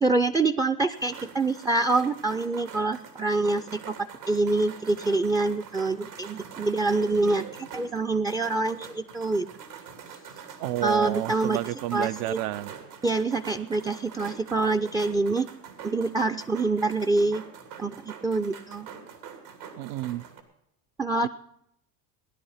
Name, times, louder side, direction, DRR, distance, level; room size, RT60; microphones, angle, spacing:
voice 1, 0.0-4.0 4.3-9.5 10.8-11.6 11.9-12.4 13.0-15.5 15.8-17.4 17.8-18.9 21.0-21.3, right 3 dB, 10° right, 0.5 m, -26 dB
sound 1, 0.9-20.4, right 7 dB, 80° right, 3.1 m, -44 dB
voice 2, 10.6-12.7 19.8-20.2 21.2-21.3, right 15 dB, 50° right, 0.6 m, -30 dB
18.5 x 11.0 x 5.7 m
hypercardioid pair, 90°, 48 cm